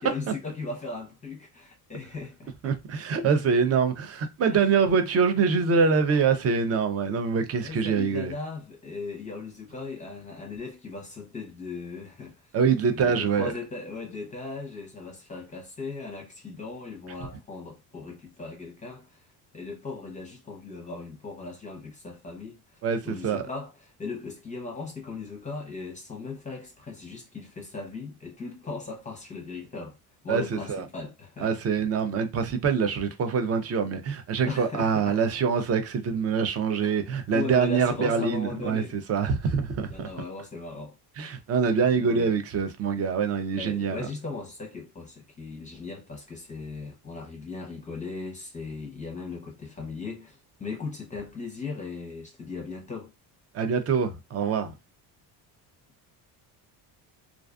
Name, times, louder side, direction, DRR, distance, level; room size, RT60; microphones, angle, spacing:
voice 1, 0.0-2.7 4.5-4.7 6.1-6.2 7.6-12.5 12.9-19.3 19.5-22.8 23.0-23.7 24.0-30.0 30.2-31.5 34.4-35.2 36.8-37.0 37.3-39.0 39.9-41.0 41.9-42.3 43.5-53.1, left 3 dB, 20° left, 0.6 m, -38 dB
voice 2, 2.6-8.3 12.5-13.5 22.8-23.5 30.3-30.9 31.4-40.1 41.2-44.1 53.5-54.7, right 5 dB, 40° right, 0.5 m, -25 dB
2.4 x 2.3 x 2.4 m
cardioid pair, 130°, 40 cm